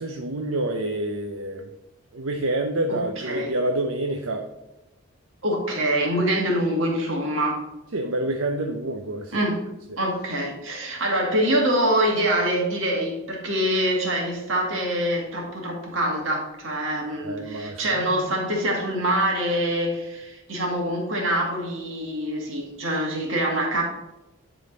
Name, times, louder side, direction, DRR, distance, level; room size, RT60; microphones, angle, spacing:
voice 1, 0.0-1.7 2.1-4.4 7.9-9.5 17.2-18.0, right 1 dB, 90° right, 3 dB, 0.7 m, -27 dB
voice 2, 2.9-3.5 5.4-7.6 9.3-9.6 10.0-23.8, right 1 dB, 70° right, -1 dB, 2.0 m, -25 dB
10.5 x 3.9 x 3.9 m, 0.98 s
head